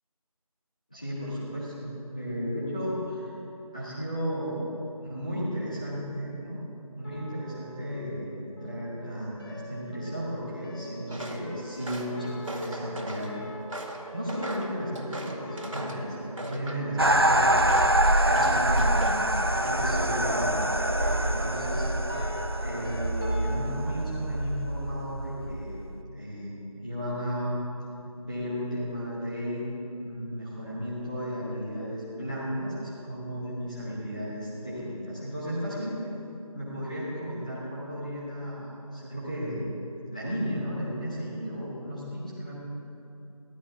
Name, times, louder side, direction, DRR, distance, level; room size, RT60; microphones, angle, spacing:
voice 1, 0.9-3.3 3.7-4.6 5.0-6.6 7.0-13.3 13.7-17.5 18.2-20.6 20.9-21.9 22.6-25.9 26.1-27.6 28.2-29.6 30.0-36.0 36.5-39.7 40.1-42.6, equal, 10° left, -10 dB, 1.2 m, -34 dB
sound 1, 7.0-23.6, equal, 40° left, 2.8 m, -44 dB
Walk footsteps, 11.1-11.4 11.8-13.3 13.7-16.0 16.4-17.2 17.7-18.0 18.3-19.2 19.6-20.0, right 1 dB, 60° right, 2.0 m, -39 dB
sound 2, 17.0-25.9, right 1 dB, 40° right, 0.6 m, -25 dB
22.5 x 15.5 x 3.6 m, 2.9 s
figure-of-eight pair, 175°, 19 cm